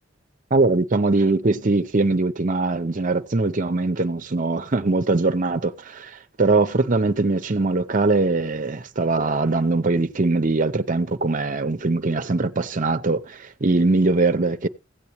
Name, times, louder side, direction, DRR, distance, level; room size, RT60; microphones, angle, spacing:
voice 1, 0.5-14.7, right 3 dB, 45° right, 0.7 m, -21 dB
16.0 x 8.4 x 3.0 m
head